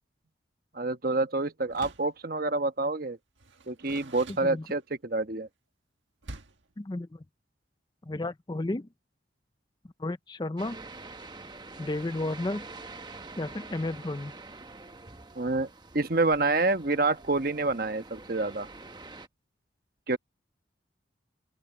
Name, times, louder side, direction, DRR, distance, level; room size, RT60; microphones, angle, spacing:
voice 1, 0.7-3.2 3.7-5.5 15.3-15.7 15.9-18.7 20.1-20.2, right 3 dB, 50° right, 1.2 m, -27 dB
Door, 1.7-2.2 3.4-5.0 6.2-6.7, right 2 dB, 85° right, 1.6 m, -46 dB
voice 2, 6.8-7.2 8.1-8.9 10.0-10.8 11.8-12.6 13.4-14.3, left 2 dB, 25° left, 0.5 m, -32 dB
sound 1, 10.6-19.3, right 3 dB, 25° right, 1.0 m, -46 dB
open air
head